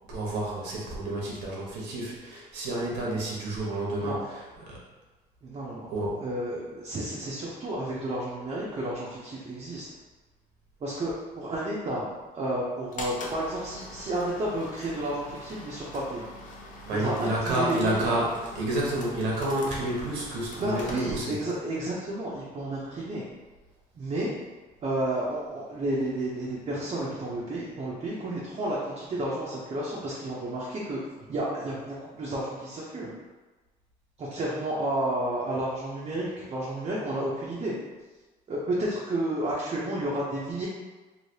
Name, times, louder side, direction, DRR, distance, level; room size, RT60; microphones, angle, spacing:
voice 1, 0.1-4.8 5.9-6.2 16.8-21.4, right 1 dB, 90° right, -4 dB, 1.1 m, -30 dB
voice 2, 5.4-9.8 10.8-16.2 17.0-18.0 20.5-23.2 24.0-24.3 24.8-31.0 31.3-33.1 34.2-37.7 38.5-40.7, right 1 dB, 35° right, -6 dB, 0.7 m, -31 dB
sound 1, 12.9-21.6, left 2 dB, 50° left, 0.6 m, -43 dB
3.2 x 2.8 x 2.7 m, 1.2 s
cardioid pair, 110°, 17 cm